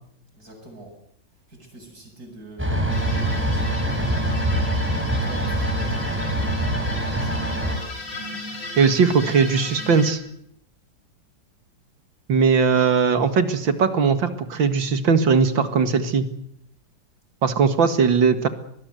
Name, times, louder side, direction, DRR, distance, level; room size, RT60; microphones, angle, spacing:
voice 1, 0.3-0.9 1.5-4.1 4.8-7.5, right 1 dB, 50° right, 3 dB, 8.1 m, -44 dB
sound 1, 2.6-7.8, right 1 dB, 5° right, 6.2 m, -24 dB
sound 2, 2.9-10.1, left 2 dB, 75° left, 5.4 m, -36 dB
voice 2, 8.8-10.2 12.3-16.3 17.4-18.5, right 5 dB, 85° right, 10 dB, 2.7 m, -19 dB
24.0 x 20.0 x 8.1 m, 0.71 s
omnidirectional pair, 2.0 m